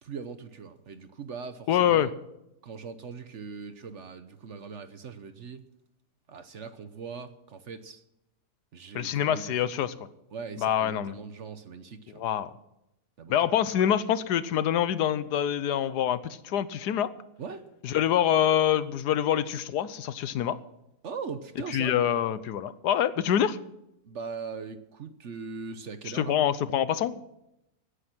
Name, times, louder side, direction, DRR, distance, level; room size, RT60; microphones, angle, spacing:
voice 1, 0.0-2.1 2.6-5.7 6.3-8.0 8.7-9.9 10.3-12.2 13.2-13.4 17.4-17.7 21.0-22.0 24.0-26.4, right 5 dB, 55° right, 11 dB, 1.1 m, -40 dB
voice 2, 1.7-2.1 8.9-9.9 10.6-11.2 12.2-12.5 13.3-17.1 17.8-20.6 21.7-23.6 26.1-27.2, left 10 dB, 85° left, 15 dB, 1.4 m, -25 dB
17.0 x 10.0 x 6.1 m, 0.85 s
omnidirectional pair, 1.7 m